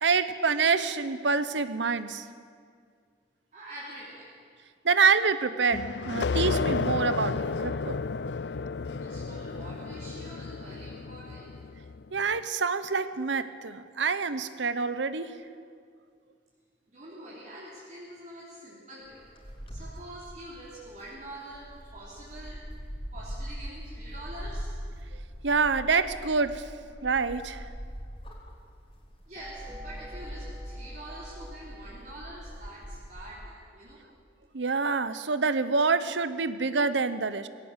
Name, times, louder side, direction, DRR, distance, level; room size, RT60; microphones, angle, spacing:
voice 1, 0.0-2.2 4.8-8.0 12.1-15.3 25.4-26.7 27.0-27.7 34.5-37.5, right 4 dB, 80° right, 13 dB, 0.9 m, -26 dB
voice 2, 3.5-4.3 9.0-11.5 16.9-19.2 19.7-22.6 23.1-24.8 29.3-34.0, right 1 dB, 40° right, -7 dB, 3.4 m, -45 dB
sound 1, 5.7-12.1, left 4 dB, 65° left, 0.5 m, -32 dB
sound 2, 19.0-33.4, equal, 30° left, 3.6 m, -42 dB
sound 3, 29.4-33.1, equal, 5° right, 2.9 m, -44 dB
19.5 x 17.0 x 8.2 m, 2.1 s
head